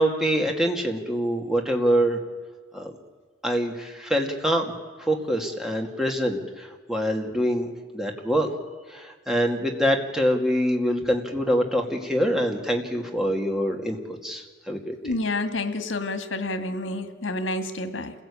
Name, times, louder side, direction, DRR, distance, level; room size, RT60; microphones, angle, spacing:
voice 1, 0.0-2.2 2.7-2.9 3.4-4.7 5.0-8.5 8.9-15.1, equal, ahead, 2 dB, 2.4 m, -25 dB
voice 2, 15.0-18.1, left 2 dB, 90° left, 8 dB, 1.9 m, -29 dB
28.5 x 16.5 x 8.6 m, 1.5 s
head